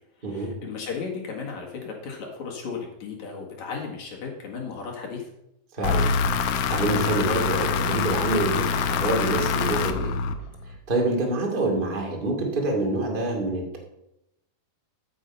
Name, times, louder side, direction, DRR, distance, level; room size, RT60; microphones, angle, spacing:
voice 1, 0.3-5.3, left 5 dB, 55° left, -1 dB, 2.8 m, -35 dB
voice 2, 5.7-6.1 6.7-10.1 10.9-13.8, right 2 dB, 20° right, 0 dB, 1.3 m, -26 dB
sound 1, 5.8-10.8, left 5 dB, 85° left, 1.8 m, -25 dB
13.5 x 6.9 x 5.4 m, 0.82 s
omnidirectional pair, 4.7 m